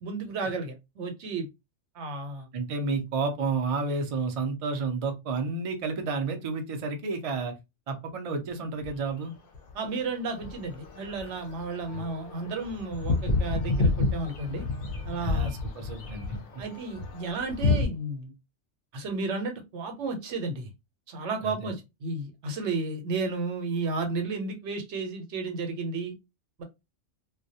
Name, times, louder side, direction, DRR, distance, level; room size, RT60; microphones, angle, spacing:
voice 1, 0.0-1.5 1.9-2.5 9.7-14.6 15.1-15.6 16.6-18.3 18.9-20.7 21.1-26.1 26.6-26.7, right 3 dB, 75° right, 1.0 m, -33 dB
voice 2, 2.5-7.5 7.9-9.3 11.9-12.0 15.2-16.4 21.4-21.7, right 4 dB, 50° right, 0.4 m, -31 dB
sound 1, 8.8-9.1 9.5-17.9, left 3 dB, 60° left, 0.7 m, -30 dB
2.3 x 2.1 x 2.7 m
omnidirectional pair, 1.2 m